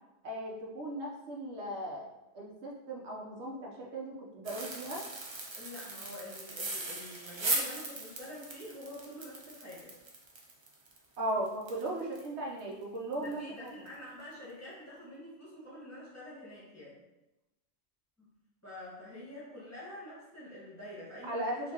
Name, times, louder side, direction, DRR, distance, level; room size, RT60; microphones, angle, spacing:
voice 1, 0.2-2.1 2.3-5.0 11.2-13.7 21.3-21.7, right 1 dB, 80° right, -2 dB, 1.0 m, -37 dB
sound 1, 4.4-12.3 12.6-12.7 13.1-13.3 13.7-13.9, right 2 dB, 35° right, 0.4 m, -38 dB
voice 2, 5.5-9.9 13.2-17.0 18.2-18.3 18.6-21.7, left 1 dB, 15° left, -9 dB, 1.4 m, -47 dB
4.4 x 2.7 x 2.9 m, 0.99 s
omnidirectional pair, 1.1 m